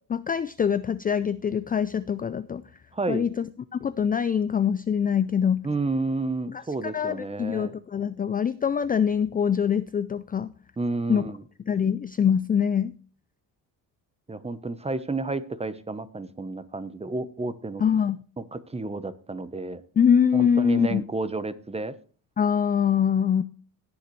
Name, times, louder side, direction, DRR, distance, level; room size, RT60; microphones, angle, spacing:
voice 1, 0.1-2.6 3.1-3.4 3.7-5.7 6.5-6.6 6.9-10.5 11.1-11.2 11.7-12.9 17.8-18.2 20.0-21.0 22.4-23.4, left 7 dB, 25° left, 14 dB, 0.4 m, -24 dB
voice 2, 2.9-3.3 5.6-7.7 10.8-11.4 14.3-17.8 18.4-19.8 20.3-21.9, right 3 dB, 15° right, 13 dB, 0.9 m, -31 dB
18.0 x 7.0 x 3.2 m, 0.41 s
cardioid pair, 110°, 40 cm